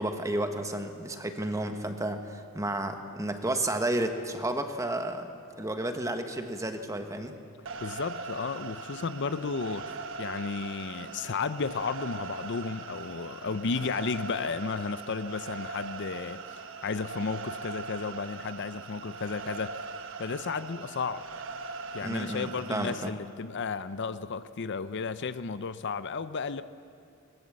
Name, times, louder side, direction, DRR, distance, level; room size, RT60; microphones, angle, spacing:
voice 1, 0.0-5.3 5.6-7.3 22.0-23.1, right 1 dB, 15° right, 6 dB, 1.4 m, -32 dB
sound 1, 7.7-23.1, right 4 dB, 60° right, 1.2 m, -41 dB
voice 2, 7.8-19.8 20.2-21.2 21.9-26.6, left 4 dB, 55° left, 13 dB, 0.6 m, -33 dB
22.0 x 20.0 x 7.7 m, 2.5 s
head